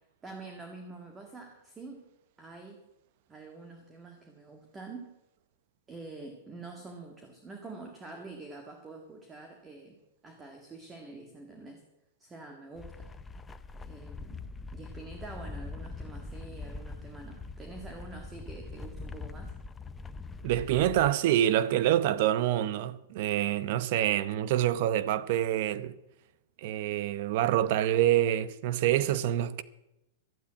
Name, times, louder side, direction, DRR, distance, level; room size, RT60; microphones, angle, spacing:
voice 1, 0.2-2.1 2.4-2.8 3.3-5.1 5.9-10.0 10.2-11.8 12.2-13.1 13.9-14.4 14.7-19.5, right 3 dB, 15° right, 1.7 m, -46 dB
sound 1, 12.7-21.1, left 3 dB, 10° left, 0.5 m, -43 dB
voice 2, 20.4-25.9 26.6-29.6, right 12 dB, 55° right, 0.8 m, -26 dB
12.5 x 8.4 x 8.8 m
hypercardioid pair, 140°, 0 cm